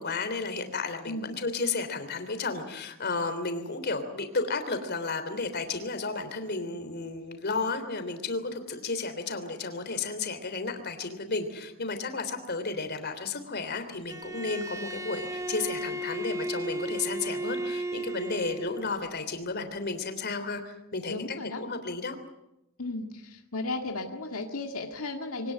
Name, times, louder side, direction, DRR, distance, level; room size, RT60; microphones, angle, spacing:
voice 1, 0.0-22.2, left 3 dB, 50° left, 9 dB, 3.3 m, -33 dB
Bowed string instrument, 14.1-18.9, right 1 dB, 15° right, 0.9 m, -34 dB
voice 2, 21.1-21.6 22.8-25.5, left 2 dB, 85° left, 3 dB, 2.0 m, -35 dB
24.0 x 18.5 x 9.1 m, 0.88 s
head